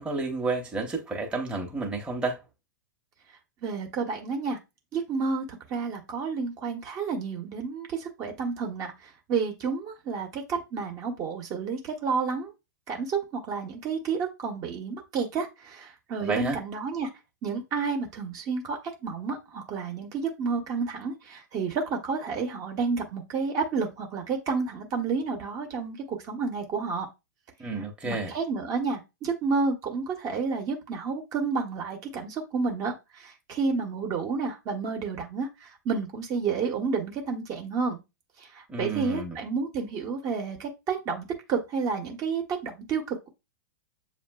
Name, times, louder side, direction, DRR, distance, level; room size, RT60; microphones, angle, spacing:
voice 1, 0.0-2.4 16.2-16.6 27.6-28.3 38.7-39.4, right 3 dB, 10° right, 0.9 m, -30 dB
voice 2, 3.6-4.6 4.9-12.5 12.9-17.1 17.4-27.1 28.0-38.0 38.4-43.3, right 5 dB, 35° right, 0.9 m, -30 dB
7.0 x 2.6 x 2.2 m
figure-of-eight pair, 100°, 10 cm